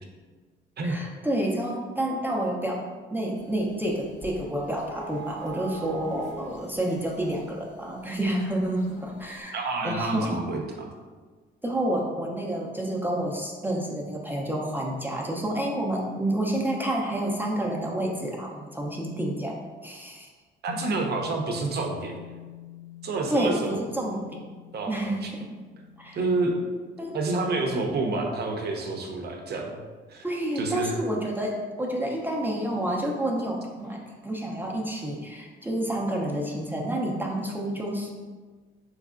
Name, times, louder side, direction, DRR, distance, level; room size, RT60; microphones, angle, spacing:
voice 1, 0.8-2.8 3.1-9.6 9.8-10.4 11.6-20.3 23.3-24.2 24.9-25.2 26.0-26.2 27.0-27.2 30.2-38.1, right 1 dB, 10° right, -2 dB, 0.5 m, -29 dB
sound 1, 3.4-9.4, right 4 dB, 40° left, 0.7 m, -44 dB
voice 2, 9.5-10.9 20.6-22.2 23.0-23.8 24.7-25.3 26.2-26.5 27.1-29.8 30.1-30.2 30.6-30.9, right 3 dB, 55° right, 2 dB, 0.6 m, -28 dB
sound 2, 20.7-29.1, left 13 dB, 70° left, 0.5 m, -46 dB
3.5 x 3.1 x 2.4 m, 1.4 s
cardioid pair, 90°, 20 cm